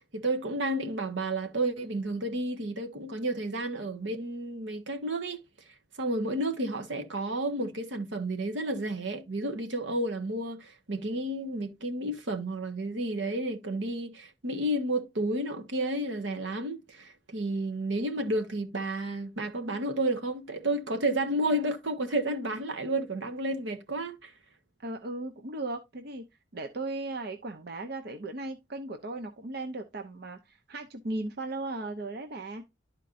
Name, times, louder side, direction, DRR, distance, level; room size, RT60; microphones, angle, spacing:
voice 1, 0.1-5.4 6.0-24.3, right 1 dB, 80° right, 1.3 m, -31 dB
voice 2, 24.8-26.2 26.5-32.6, right 2 dB, 60° right, 0.7 m, -37 dB
12.0 x 4.5 x 2.5 m
head